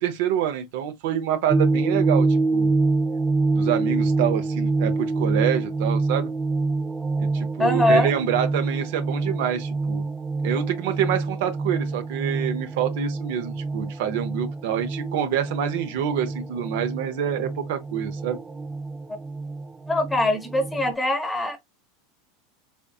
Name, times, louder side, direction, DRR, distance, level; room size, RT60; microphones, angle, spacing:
voice 1, 0.0-2.7 3.5-6.3 7.2-10.0 10.4-18.4, right 9 dB, 70° right, 0.6 m, -27 dB
sound 1, 1.5-20.9, right 3 dB, 15° right, 0.4 m, -26 dB
voice 2, 7.6-8.1 19.9-21.6, left 1 dB, 10° left, 1.0 m, -22 dB
3.5 x 2.6 x 2.3 m
hypercardioid pair, 105°, 0 cm